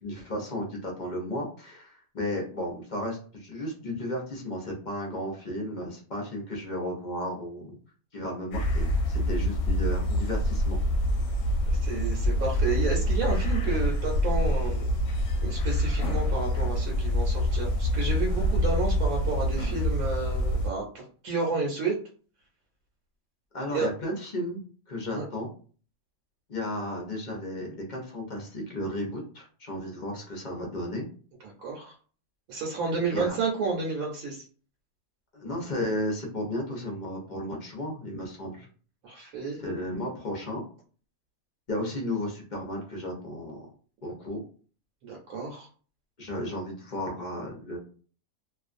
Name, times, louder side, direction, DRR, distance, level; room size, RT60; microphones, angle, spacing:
voice 1, 0.0-7.8 8.1-10.8 23.5-24.6 24.9-25.5 26.5-31.0 32.8-33.3 35.3-38.7 39.6-40.6 41.7-43.7 44.0-44.4 46.2-47.8, left 1 dB, 45° left, -1 dB, 0.6 m, -34 dB
sound 1, 8.5-20.7, left 1 dB, 70° left, 0.9 m, -26 dB
voice 2, 11.7-14.8 15.4-21.9 23.7-23.9 25.1-25.2 31.4-31.9 32.5-34.4 39.0-39.6 45.0-45.7, right 4 dB, 75° right, -2 dB, 1.1 m, -31 dB
2.4 x 2.3 x 2.4 m, 0.41 s
omnidirectional pair, 1.5 m